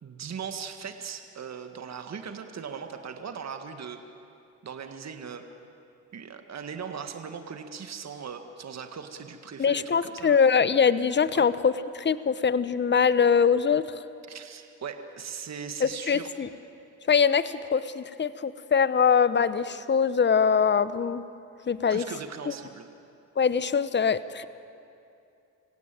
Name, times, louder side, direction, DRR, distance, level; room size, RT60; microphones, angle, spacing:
voice 1, 0.0-4.0 4.6-5.5 6.1-10.4 11.3-11.5 14.3-16.3 21.9-22.9, right 6 dB, 45° right, 7 dB, 1.8 m, -39 dB
voice 2, 9.6-14.0 15.8-16.5 17.0-21.2 21.7-22.0 22.5-22.6 23.4-24.4, left 6 dB, 30° left, 15 dB, 1.0 m, -23 dB
26.5 x 16.5 x 9.1 m, 2.7 s
supercardioid pair, 60°, 36 cm